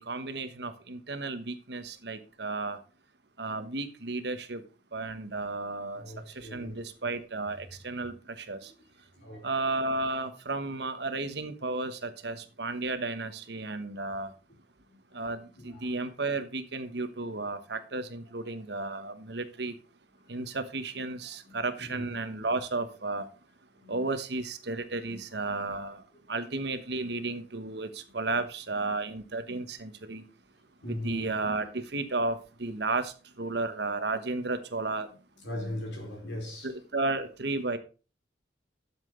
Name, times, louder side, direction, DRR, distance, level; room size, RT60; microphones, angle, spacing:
voice 1, 0.0-2.8 3.4-4.6 4.9-8.7 9.4-14.3 15.1-19.8 20.3-23.3 23.9-26.0 26.3-30.2 30.9-35.1 36.6-37.8, right 3 dB, 60° right, 1.2 m, -33 dB
voice 2, 5.9-6.8 9.2-9.7 15.6-15.9 20.3-20.4 21.5-22.1 23.7-24.0 25.1-25.2 29.5-29.6 30.8-31.3 35.4-36.7, left 1 dB, 70° left, 4.4 m, -40 dB
11.0 x 7.4 x 3.8 m
head